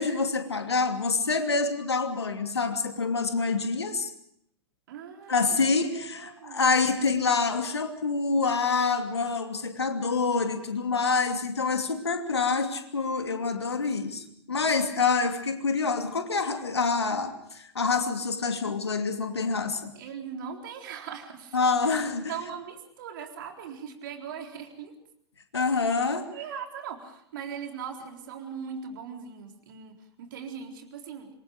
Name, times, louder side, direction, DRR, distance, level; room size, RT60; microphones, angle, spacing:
voice 1, 0.0-4.1 5.3-19.9 21.5-22.3 25.5-26.3, left 4 dB, 75° left, 6 dB, 2.7 m, -26 dB
voice 2, 4.9-6.7 20.0-21.6 21.9-22.0 22.3-24.9 26.3-31.3, right 7 dB, 50° right, 4 dB, 4.0 m, -40 dB
26.5 x 23.0 x 5.1 m, 0.71 s
figure-of-eight pair, 100°, 14 cm